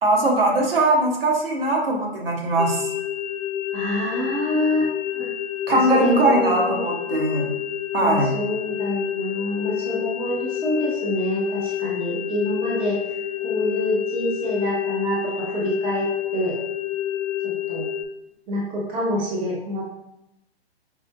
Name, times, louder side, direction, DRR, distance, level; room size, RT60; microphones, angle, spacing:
voice 1, 0.0-2.9 5.7-7.5 7.9-8.3, right 2 dB, 60° right, 0 dB, 1.2 m, -20 dB
sound 1, 2.6-18.0, left 11 dB, 40° left, 0.5 m, -28 dB
voice 2, 3.7-5.3 5.7-7.0 8.0-13.0 13.4-16.5 17.4-17.8 18.5-19.8, equal, 15° right, -5 dB, 0.9 m, -26 dB
5.4 x 2.6 x 2.3 m, 0.84 s
figure-of-eight pair, 120°, 32 cm